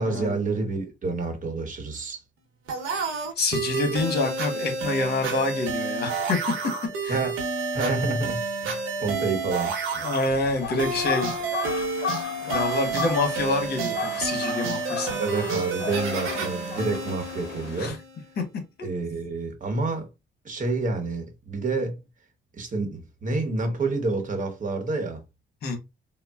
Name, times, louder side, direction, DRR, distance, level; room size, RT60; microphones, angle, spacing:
voice 1, 0.0-2.2 7.1-7.3 7.7-9.7 15.2-18.0 18.8-20.1 20.4-22.0 22.5-25.2, right 3 dB, 40° right, 0.9 m, -28 dB
sound 1, 2.7-18.2, right 4 dB, 90° right, 0.8 m, -30 dB
voice 2, 3.4-6.5 7.0-7.2 10.0-11.3 12.4-15.2 17.8-18.0 25.6-25.8, left 3 dB, 55° left, 1.0 m, -27 dB
sound 2, 10.3-17.9, left 6 dB, 70° left, 0.6 m, -34 dB
3.8 x 2.0 x 2.3 m
cardioid pair, 90°, 20 cm